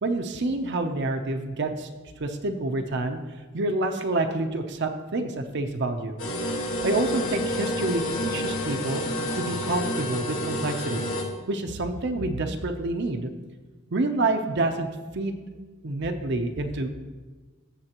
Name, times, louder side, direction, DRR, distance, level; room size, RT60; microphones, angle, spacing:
voice 1, 0.0-1.9 2.2-3.2 3.5-6.1 6.8-9.0 9.3-11.1 11.5-13.3 13.9-14.9 15.1-15.3 15.8-16.9, right 2 dB, 55° right, 5 dB, 0.6 m, -28 dB
sound 1, 6.2-11.2, left 1 dB, 65° left, 1.5 m, -29 dB
14.5 x 7.1 x 3.0 m, 1.3 s
head